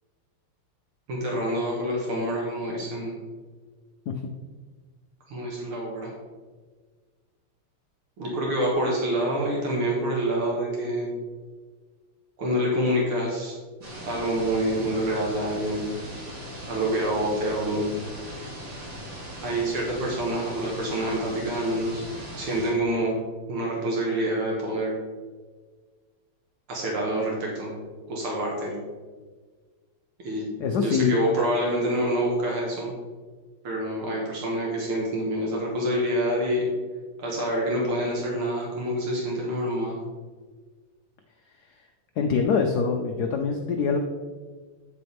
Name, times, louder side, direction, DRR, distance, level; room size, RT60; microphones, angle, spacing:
voice 1, 1.1-3.1 5.3-6.1 8.2-11.1 12.4-13.6 14.0-15.9 16.7-17.9 19.4-22.1 22.4-23.2 23.5-24.9 26.7-27.7 28.1-28.7 30.2-30.4 30.8-32.9 33.6-36.7 37.2-40.0, right 1 dB, 80° right, -3 dB, 2.4 m, -27 dB
sound 1, 13.8-22.7, equal, 50° right, 3.0 m, -39 dB
voice 2, 30.6-31.2 41.7-41.9 42.2-44.0, left 5 dB, 75° left, 4 dB, 0.9 m, -24 dB
9.2 x 6.9 x 3.5 m, 1.5 s
omnidirectional pair, 2.4 m